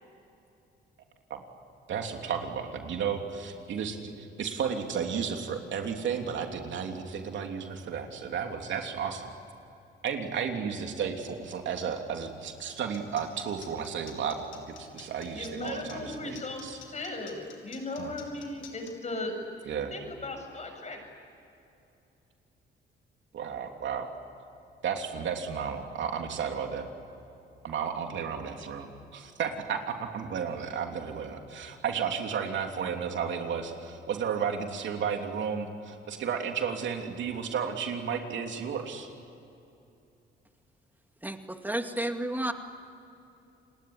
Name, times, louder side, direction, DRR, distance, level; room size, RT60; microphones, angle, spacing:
voice 1, 1.9-9.3 10.0-14.5 14.8-16.7 18.0-18.2 19.7-19.9 23.3-24.1 24.8-26.9 27.6-39.1, right 7 dB, 70° right, 4 dB, 3.1 m, -33 dB
sound 1, 12.7-18.9, left 8 dB, 75° left, 4.5 m, -50 dB
voice 2, 15.3-19.3 19.6-21.0, left 2 dB, 35° left, 4 dB, 7.2 m, -37 dB
voice 3, 41.2-42.5, right 1 dB, 10° right, 6 dB, 2.3 m, -31 dB
30.0 x 20.0 x 9.7 m, 2.8 s
cardioid pair, 90°, 20 cm